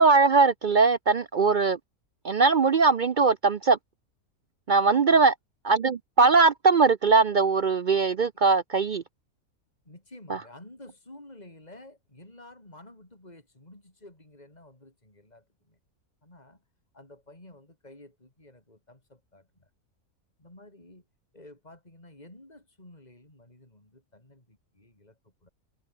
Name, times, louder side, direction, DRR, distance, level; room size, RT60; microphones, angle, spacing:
voice 1, 0.0-1.8 2.2-3.8 4.7-5.3 5.7-9.0 10.3-10.4, right 4 dB, 60° right, 0.5 m, -20 dB
voice 2, 4.9-5.3 9.8-15.8 16.2-16.6 16.9-19.7 20.4-21.0 21.3-25.5, left 1 dB, 25° left, 5.8 m, -51 dB
omnidirectional pair, 1.6 m